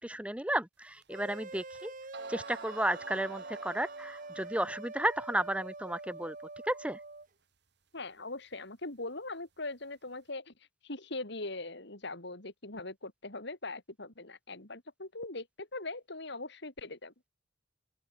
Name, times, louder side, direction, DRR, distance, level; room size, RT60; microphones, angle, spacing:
voice 1, 0.0-1.9 2.3-6.3 6.7-7.0, right 1 dB, 5° right, 1.6 m, -33 dB
sound 1, 1.0-1.1 1.8-1.9 2.1-4.6, right 3 dB, 60° right, 7.9 m, -47 dB
sound 2, 1.1-7.3, right 3 dB, 45° right, 3.3 m, -45 dB
voice 2, 7.9-10.5 10.8-17.1, left 2 dB, 60° left, 4.0 m, -41 dB
open air
head